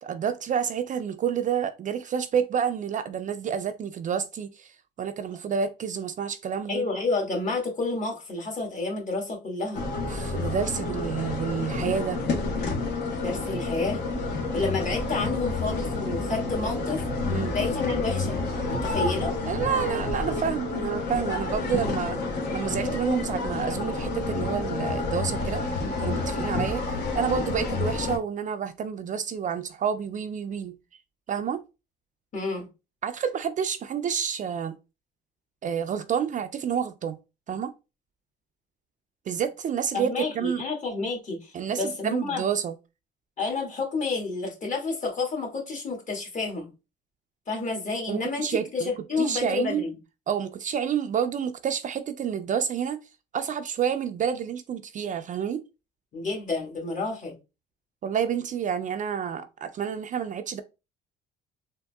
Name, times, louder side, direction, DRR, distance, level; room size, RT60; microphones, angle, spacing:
voice 1, 0.0-6.8 10.0-12.2 17.3-17.5 19.5-22.2 22.5-25.6 26.0-30.7 31.3-31.6 33.0-34.8 35.6-37.2 37.5-37.7 39.3-40.1 40.4-40.6 41.5-42.7 48.1-48.9 49.2-49.8 50.3-53.0 53.3-55.6 58.0-60.6, right 7 dB, 40° right, 0.4 m, -29 dB
voice 2, 6.7-9.8 13.2-14.0 14.3-17.0 17.5-18.4 18.7-19.4 32.3-32.7 39.9-42.4 43.4-46.7 47.5-49.9 56.1-57.3, left 3 dB, 40° left, 1.6 m, -30 dB
sound 1, 9.7-28.2, left 3 dB, 65° left, 1.1 m, -29 dB
3.7 x 2.6 x 2.3 m
cardioid pair, 85°, 19 cm